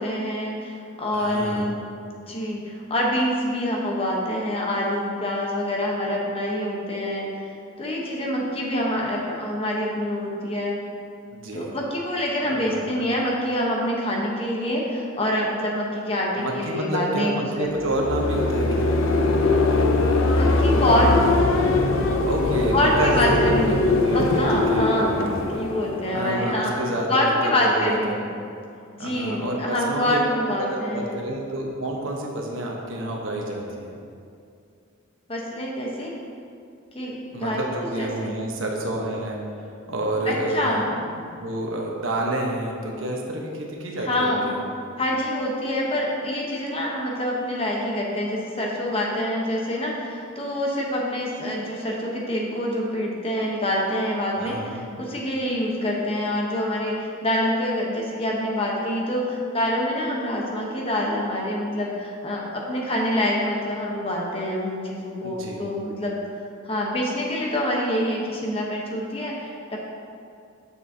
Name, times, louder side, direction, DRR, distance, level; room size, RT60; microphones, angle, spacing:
voice 1, 0.0-1.8 2.3-7.3 7.8-10.8 11.5-17.7 20.3-21.2 22.7-23.8 24.1-26.7 27.1-28.2 28.9-31.2 35.3-36.1 36.9-38.3 40.2-40.8 44.0-44.5 45.0-66.2 66.6-69.8, left 1 dB, 25° left, -2 dB, 0.9 m, -26 dB
voice 2, 1.1-1.7 11.3-11.7 12.4-12.9 16.4-18.9 22.3-24.4 24.7-24.9 26.1-28.2 29.0-30.2 30.6-34.0 37.3-39.4 39.9-44.6 54.4-54.8 65.2-65.6, right 1 dB, 75° right, -1 dB, 1.1 m, -29 dB
sound 1, 17.7-26.7, left 2 dB, 75° left, 0.6 m, -22 dB
9.0 x 6.9 x 2.8 m, 2.5 s
head